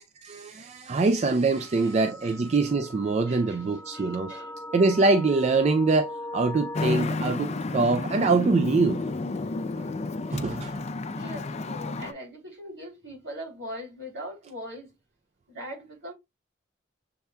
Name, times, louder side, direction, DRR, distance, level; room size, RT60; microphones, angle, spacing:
voice 1, 0.2-4.3 4.7-9.0 10.3-10.8, right 3 dB, 35° right, 0.4 m, -24 dB
sound 1, 1.5-7.0, left 1 dB, 15° left, 0.9 m, -40 dB
voice 2, 1.5-1.9 2.2-2.4 3.3-4.5 10.3-10.4 11.1-14.9 15.5-16.1, equal, 65° right, 3.0 m, -41 dB
Traffic noise roadway noise, 6.7-12.1, left 3 dB, 35° left, 0.4 m, -31 dB
6.9 x 3.4 x 2.2 m
head